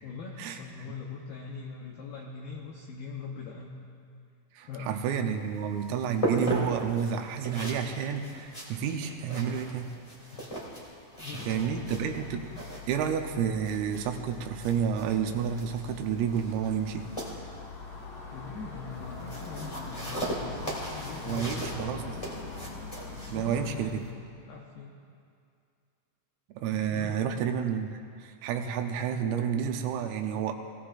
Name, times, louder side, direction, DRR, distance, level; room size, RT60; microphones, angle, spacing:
voice 1, 0.0-3.8 4.6-5.0 10.3-10.5 11.2-12.1 18.3-21.6 23.2-24.2 24.5-25.0 26.9-27.2, left 5 dB, 85° left, -1 dB, 2.1 m, -42 dB
voice 2, 4.6-9.9 11.3-12.4 12.9-17.1 21.2-22.2 23.3-24.0 26.6-30.6, right 8 dB, 85° right, 4 dB, 3.6 m, -30 dB
sound 1, 5.2-24.1, right 1 dB, 25° left, 0.7 m, -39 dB
sound 2, 11.4-23.9, left 3 dB, 50° left, 1.9 m, -43 dB
22.5 x 17.0 x 2.6 m, 2.4 s
omnidirectional pair, 6.0 m